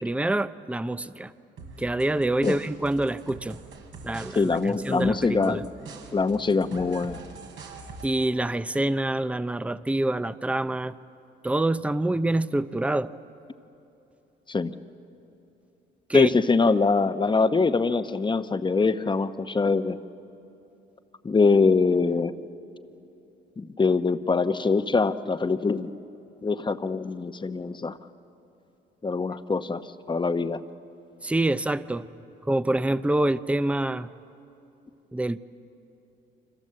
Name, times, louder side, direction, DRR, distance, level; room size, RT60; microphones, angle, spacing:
voice 1, 0.0-1.3 1.8-3.6 4.0-4.5 4.8-5.6 8.0-10.9 11.4-13.1 16.1-16.3 31.2-32.1 32.4-34.1 35.1-35.4, right 1 dB, 5° right, 14 dB, 0.6 m, -26 dB
sound 1, 1.6-8.3, right 4 dB, 80° right, 3.8 m, -44 dB
voice 2, 4.3-5.6 6.1-7.2 14.5-14.7 16.1-20.0 21.2-22.3 23.6-25.9 26.4-28.0 29.0-29.8 30.1-30.6, left 4 dB, 25° left, 10 dB, 1.0 m, -23 dB
29.5 x 25.0 x 7.7 m, 2.9 s
cardioid pair, 90°, 20 cm